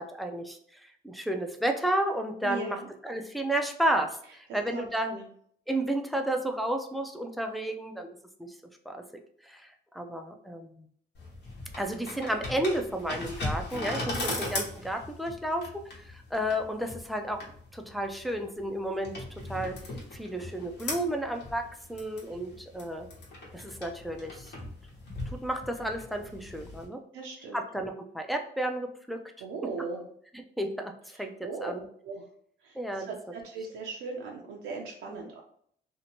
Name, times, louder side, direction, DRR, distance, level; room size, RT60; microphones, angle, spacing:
voice 1, 0.0-5.1 5.7-8.5 8.9-9.0 9.4-10.9 11.8-15.7 16.0-17.4 17.7-19.1 19.5-19.8 20.1-21.6 21.9-23.1 23.5-24.5 25.3-27.0 27.5-29.2 30.6-31.3 31.6-31.8 32.8-33.1 35.1-35.2, right 1 dB, ahead, 3 dB, 0.3 m, -32 dB
voice 2, 2.4-2.9 4.7-5.2 14.1-14.4 27.1-27.6 29.4-30.0 31.4-31.7 32.0-32.2 32.6-35.4, right 4 dB, 85° right, 0 dB, 0.5 m, -38 dB
sound 1, 11.1-26.8, left 2 dB, 60° left, 1.0 m, -39 dB
2.7 x 2.1 x 2.9 m, 0.62 s
cardioid pair, 90°, 20 cm